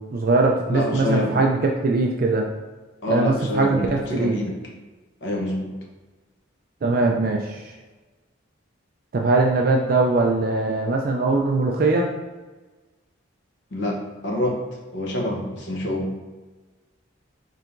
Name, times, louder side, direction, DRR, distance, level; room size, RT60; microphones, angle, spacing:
voice 1, 0.0-2.5 3.1-4.4 6.8-7.6 9.1-12.1, right 3 dB, 45° right, 0 dB, 0.4 m, -21 dB
voice 2, 0.7-1.3 3.0-4.6 5.2-5.7 13.7-14.6 14.9-16.1, left 1 dB, 60° left, -1 dB, 0.9 m, -26 dB
4.4 x 3.3 x 2.5 m, 1.2 s
head